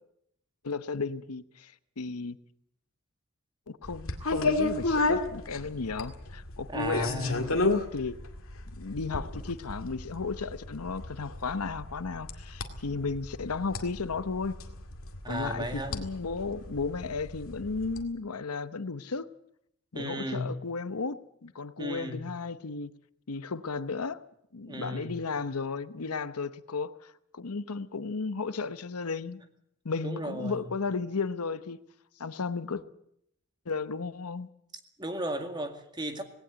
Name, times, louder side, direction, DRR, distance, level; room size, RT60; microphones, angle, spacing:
voice 1, 0.6-2.4 3.7-8.2 8.8-14.5 15.3-19.3 19.9-22.9 23.3-24.2 24.5-29.4 29.8-31.8 32.2-32.8 33.7-34.5, left 4 dB, 85° left, 13 dB, 0.9 m, -34 dB
sound 1, 3.8-18.0, left 2 dB, 65° left, 2.2 m, -34 dB
voice 2, 6.7-7.4 15.2-16.0 19.9-20.6 21.8-22.3 24.7-25.2 30.0-30.7 35.0-36.2, equal, 20° right, 6 dB, 2.0 m, -34 dB
18.5 x 18.0 x 8.2 m, 0.73 s
head